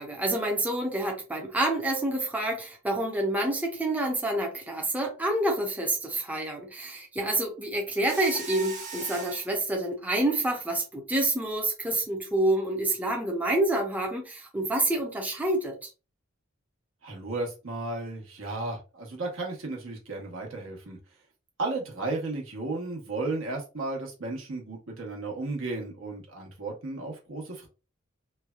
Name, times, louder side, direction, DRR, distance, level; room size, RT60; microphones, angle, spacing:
voice 1, 0.0-15.9, right 1 dB, 10° right, 0.6 m, -28 dB
Mechanisms, 8.0-9.5, right 4 dB, 40° right, 0.8 m, -38 dB
voice 2, 17.0-21.0 21.6-27.7, right 2 dB, 75° right, 1.0 m, -34 dB
3.2 x 2.2 x 2.3 m
head